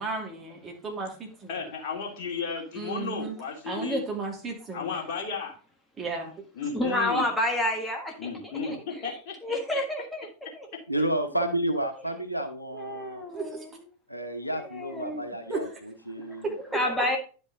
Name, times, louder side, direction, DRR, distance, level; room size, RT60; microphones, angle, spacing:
voice 1, 0.0-1.5 2.7-3.3 3.7-5.0 6.0-6.3 13.3-13.5 15.5-15.7 16.4-16.5, right 3 dB, 20° right, 0 dB, 2.8 m, -33 dB
voice 2, 1.5-4.0 4.7-5.5 6.5-7.2 8.2-9.6, left 5 dB, 45° left, 0 dB, 2.5 m, -34 dB
voice 3, 6.7-10.7 12.7-13.9 14.4-15.2 16.3-16.4 16.7-17.2, left 1 dB, 10° left, 1 dB, 1.5 m, -30 dB
voice 4, 10.9-13.2 14.1-17.0, right 1 dB, 85° left, 7 dB, 0.9 m, -31 dB
10.5 x 5.4 x 3.7 m, 0.37 s
figure-of-eight pair, 90°, 0 cm